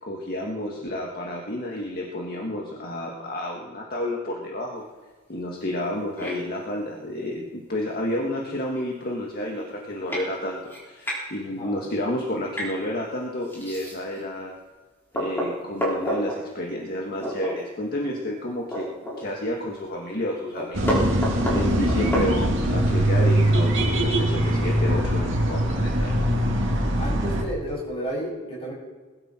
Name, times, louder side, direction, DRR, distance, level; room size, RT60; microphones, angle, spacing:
voice 1, 0.0-4.9 5.3-14.5 15.1-18.9 19.2-26.4, left 1 dB, 45° left, -1 dB, 1.9 m, -30 dB
sound 1, 6.2-6.4 7.8-7.9 8.4-8.5 8.7-9.1 9.6-9.7 10.1-10.2 10.6-11.2 12.5-12.7 13.5-14.2 14.7-14.8 15.1-16.3 17.2-17.5 17.9-18.0 18.4-19.5 19.8-19.9 20.3-22.8, equal, 10° left, 5.0 m, -30 dB
sound 2, 20.7-27.4, right 1 dB, 65° right, 2.2 m, -22 dB
voice 2, 27.0-28.7, equal, 30° left, -4 dB, 6.7 m, -32 dB
21.0 x 13.0 x 4.5 m, 1.3 s
head